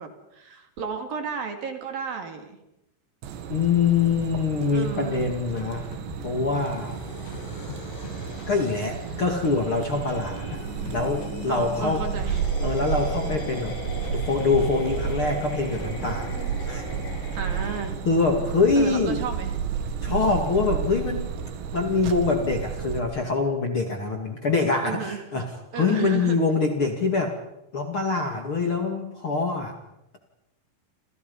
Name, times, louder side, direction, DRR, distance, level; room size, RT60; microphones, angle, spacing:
voice 1, 0.0-2.6 4.7-5.3 11.5-12.5 17.3-18.0 18.8-19.6 24.8-25.2 25.7-26.4, right 6 dB, 60° right, 6 dB, 4.1 m, -33 dB
sound 1, 3.2-23.0, right 7 dB, 85° right, 4.3 m, -32 dB
voice 2, 3.5-5.9 6.2-7.0 8.5-12.0 12.6-13.7 14.1-16.3 16.7-16.8 18.0-19.2 20.0-21.3 21.7-25.5 25.7-27.4 27.7-29.7, left 4 dB, 35° left, 4 dB, 2.6 m, -24 dB
sound 2, 4.9-7.0 7.3-9.8 10.1-12.6 12.9-15.4 15.7-16.1, left 6 dB, 60° left, 4.9 m, -43 dB
sound 3, 6.4-17.9, left 3 dB, 85° left, 7.3 m, -39 dB
29.0 x 28.0 x 5.5 m, 0.85 s
omnidirectional pair, 5.0 m